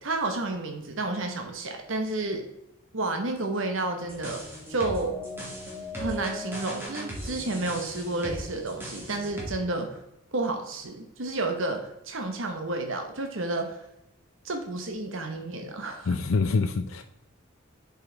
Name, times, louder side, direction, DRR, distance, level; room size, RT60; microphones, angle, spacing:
voice 1, 0.0-2.4 2.9-5.2 6.0-10.0 10.3-13.8 14.4-16.2, right 2 dB, 65° right, 1.1 m, -31 dB
sound 1, 4.0-9.5, equal, 10° right, 2.3 m, -38 dB
voice 2, 16.1-17.0, left 4 dB, 80° left, 0.5 m, -25 dB
8.0 x 5.4 x 3.9 m
head